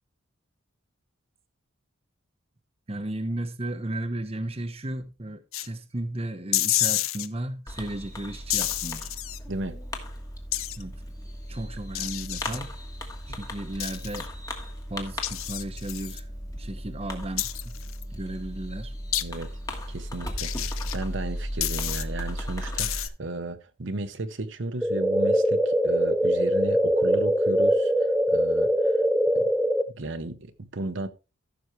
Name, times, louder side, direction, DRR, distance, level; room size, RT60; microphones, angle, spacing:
voice 1, 2.9-9.1 10.8-10.9 11.5-12.7 13.3-14.3 14.9-16.2 16.5-17.8 18.1-18.9, right 1 dB, 30° right, 0.9 m, -34 dB
sound 1, 5.5-5.7 6.5-7.3 8.5-9.4 10.5-10.8 11.9-12.6 13.8-14.3 15.2-16.2 17.4-18.0 19.1-19.2 20.4-21.0 21.6-22.0 22.8-23.1, left 14 dB, 80° left, 0.6 m, -29 dB
Fireworks, 7.7-23.1, equal, 15° left, 1.4 m, -36 dB
voice 2, 9.5-9.8 13.3-13.4 19.2-19.5 19.9-29.0 29.3-29.5 29.9-31.1, right 2 dB, 60° right, 0.9 m, -35 dB
sound 2, 24.8-29.8, equal, ahead, 0.5 m, -22 dB
14.0 x 6.2 x 3.2 m
head